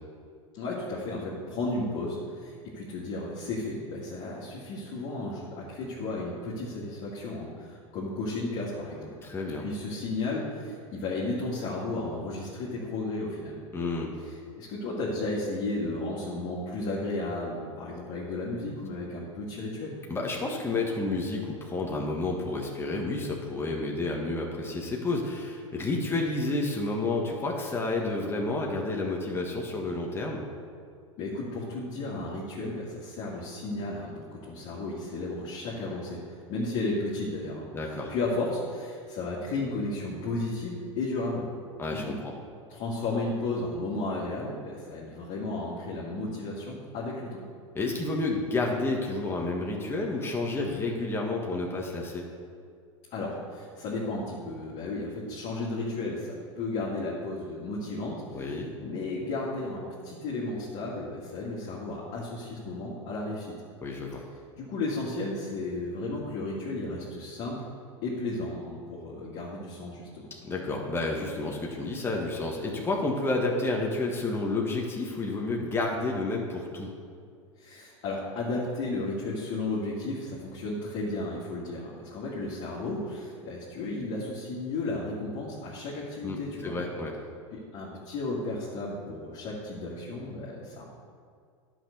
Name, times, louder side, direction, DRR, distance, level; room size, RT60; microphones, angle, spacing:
voice 1, 0.5-9.2 9.6-13.6 14.2-20.0 31.2-41.5 41.9-42.1 42.7-47.4 53.1-63.5 64.6-67.7 68.0-70.3 77.6-86.8 87.5-90.9, left 2 dB, 45° left, -7 dB, 2.3 m, -34 dB
voice 2, 9.2-9.7 13.7-14.1 20.1-30.4 37.7-38.1 41.8-42.3 47.8-52.2 58.3-58.7 63.8-64.2 70.4-76.9 86.2-87.1, left 2 dB, 15° left, -1 dB, 1.6 m, -30 dB
11.0 x 6.1 x 6.7 m, 2.2 s
hypercardioid pair, 95°, 17 cm